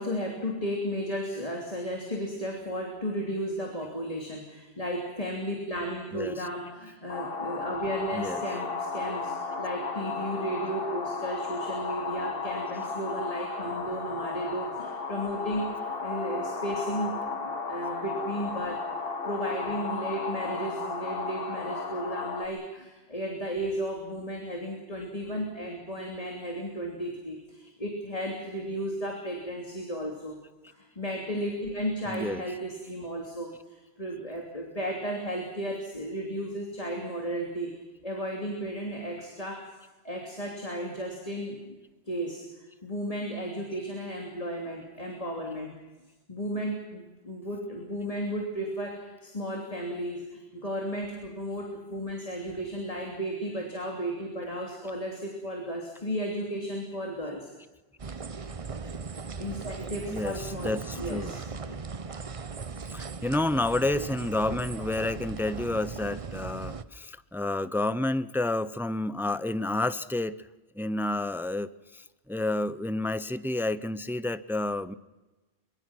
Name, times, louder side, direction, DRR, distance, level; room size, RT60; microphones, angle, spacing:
voice 1, 0.0-30.4 30.7-39.8 40.0-41.8 42.1-42.5 42.8-45.7 46.3-57.5 59.4-61.8, equal, 35° left, 0 dB, 3.2 m, -34 dB
voice 2, 6.1-6.5 8.1-8.4 32.1-32.4 60.1-61.3 62.9-70.5 70.8-74.9, left 2 dB, 5° right, 15 dB, 0.4 m, -30 dB
sound 1, 7.1-22.5, left 4 dB, 60° left, 1.7 m, -34 dB
sound 2, 58.0-66.8, right 5 dB, 35° right, 0.8 m, -38 dB
23.5 x 23.5 x 6.1 m, 1.1 s
omnidirectional pair, 1.1 m